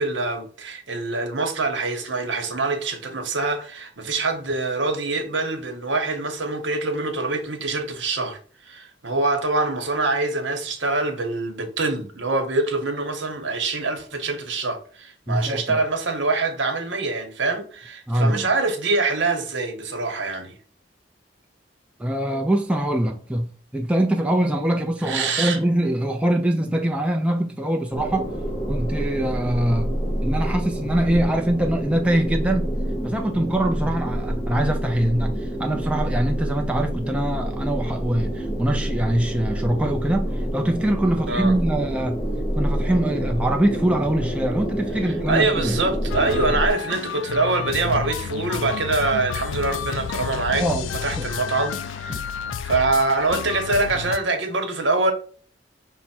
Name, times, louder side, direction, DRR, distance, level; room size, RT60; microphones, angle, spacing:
voice 1, 0.0-20.5 25.0-25.6 41.3-41.5 45.0-52.2 52.6-55.1, right 3 dB, 75° right, 1.0 m, -24 dB
voice 2, 15.3-15.8 18.1-18.5 22.0-23.5 23.7-28.3 28.7-29.9 30.2-32.7 33.0-42.2 42.5-45.8 50.6-50.9 52.1-52.2, right 1 dB, 5° right, 0.4 m, -23 dB
sound 1, 27.9-46.7, equal, 25° left, 0.9 m, -27 dB
sound 2, 46.1-54.2, left 7 dB, 90° left, 0.3 m, -30 dB
5.6 x 2.1 x 4.2 m
head